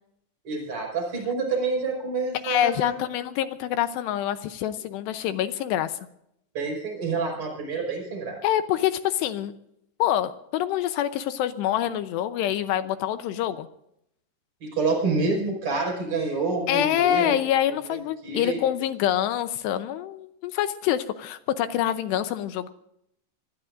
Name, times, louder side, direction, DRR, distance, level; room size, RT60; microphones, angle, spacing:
voice 1, 0.4-3.0 6.5-8.4 14.6-17.4 17.9-18.0 18.2-18.6, right 3 dB, 30° right, 1 dB, 6.2 m, -28 dB
voice 2, 2.4-6.0 8.4-9.5 10.0-13.7 16.7-22.7, left 11 dB, 80° left, 10 dB, 2.6 m, -26 dB
26.5 x 20.0 x 2.6 m, 0.75 s
omnidirectional pair, 5.5 m